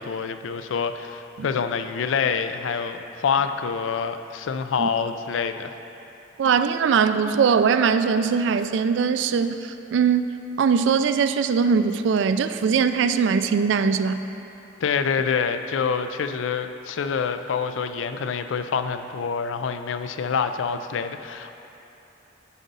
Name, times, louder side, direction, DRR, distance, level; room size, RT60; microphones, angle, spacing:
voice 1, 0.0-5.7 14.8-21.5, left 6 dB, 80° left, 9 dB, 0.4 m, -26 dB
voice 2, 6.4-14.2, right 6 dB, 70° right, 10 dB, 0.3 m, -21 dB
9.9 x 4.0 x 5.3 m, 2.9 s
head